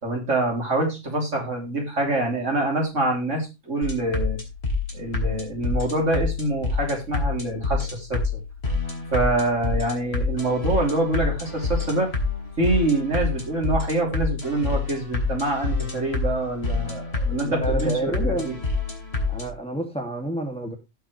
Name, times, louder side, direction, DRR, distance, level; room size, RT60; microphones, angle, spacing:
voice 1, 0.0-4.4 4.9-8.2 9.1-12.1 12.6-18.5, right 2 dB, 80° right, 3.6 m, -25 dB
sound 1, 3.8-19.5, left 3 dB, 55° left, 3.2 m, -28 dB
voice 2, 17.5-18.5 19.3-20.7, right 1 dB, 5° left, 2.3 m, -28 dB
17.5 x 6.0 x 3.2 m
omnidirectional pair, 1.3 m